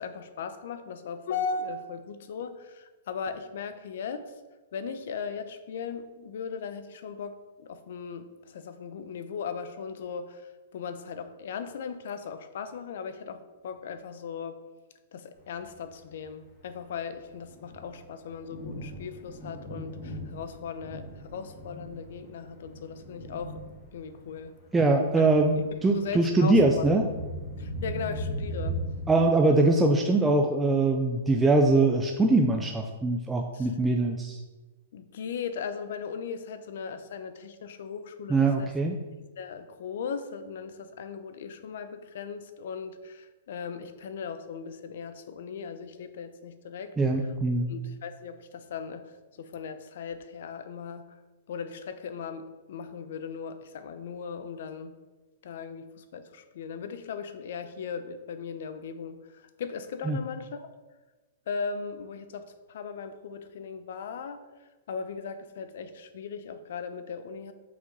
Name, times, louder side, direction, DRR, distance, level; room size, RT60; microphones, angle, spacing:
voice 1, 0.0-4.3 4.7-14.6 15.1-23.6 23.9-24.5 25.2-25.3 25.9-27.0 27.6-28.8 33.5-33.7 34.9-38.7 39.4-46.9 47.7-49.1 49.4-51.1 51.5-54.9 55.4-60.7 61.5-64.4 64.9-67.5, left 6 dB, 60° left, 10 dB, 0.7 m, -38 dB
Thunder, 15.5-29.2, equal, 10° left, 2.2 m, -39 dB
voice 2, 24.7-27.0 29.1-34.4 38.3-39.0 47.0-47.7 60.1-60.2, right 2 dB, 5° right, 2 dB, 0.4 m, -22 dB
6.3 x 5.0 x 5.4 m, 1.2 s
hypercardioid pair, 160°, 0 cm